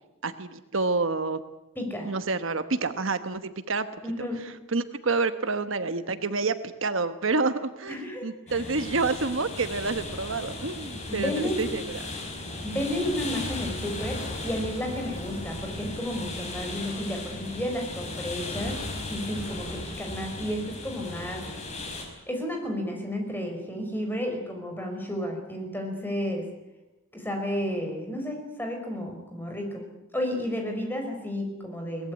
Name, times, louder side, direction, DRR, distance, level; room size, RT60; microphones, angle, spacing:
voice 1, 0.2-1.4 2.0-3.9 4.2-4.3 4.7-12.0, right 3 dB, 65° right, 10 dB, 1.2 m, -28 dB
voice 2, 1.7-2.1 4.0-4.4 7.9-8.3 11.1-11.7 12.6-18.8 19.1-21.4 22.3-26.5 27.1-29.8 30.1-32.1, equal, 10° left, 3 dB, 5.0 m, -32 dB
sound 1, 8.5-22.0, left 2 dB, 35° left, 5.3 m, -36 dB
22.5 x 19.5 x 9.6 m, 0.99 s
head